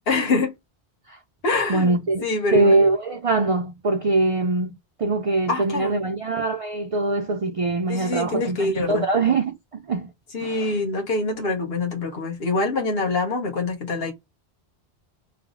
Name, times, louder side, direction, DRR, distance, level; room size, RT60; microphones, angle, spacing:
voice 1, 0.1-0.5 1.4-2.0 2.2-2.8 5.5-6.0 7.9-9.0 10.3-14.1, left 3 dB, 65° left, 1.3 m, -25 dB
voice 2, 1.7-2.3 2.5-10.1 10.4-10.7, right 2 dB, 50° right, 0.4 m, -23 dB
3.3 x 2.1 x 3.6 m
omnidirectional pair, 1.1 m